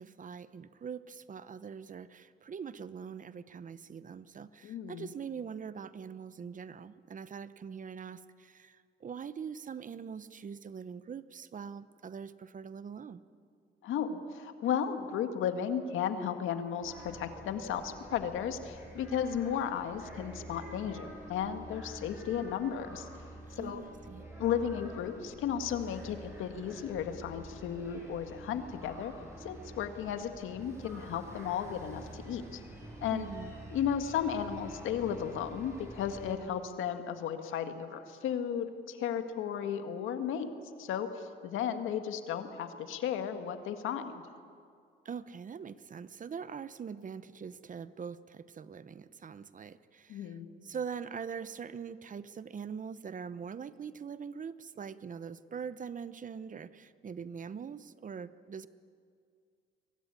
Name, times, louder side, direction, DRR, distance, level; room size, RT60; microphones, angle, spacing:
voice 1, 0.0-13.2 23.5-24.3 33.1-33.5 45.0-50.4 50.6-58.7, right 6 dB, 40° right, 15 dB, 0.9 m, -43 dB
voice 2, 4.6-5.1 13.8-23.1 23.5-23.8 24.4-29.1 29.4-32.6 33.0-33.3 33.7-40.5 40.8-44.3 50.1-50.5, left 8 dB, 85° left, 8 dB, 1.9 m, -34 dB
sound 1, 16.8-36.3, right 1 dB, 15° right, 7.7 m, -48 dB
23.5 x 18.0 x 9.9 m, 2.2 s
cardioid pair, 90°, 20 cm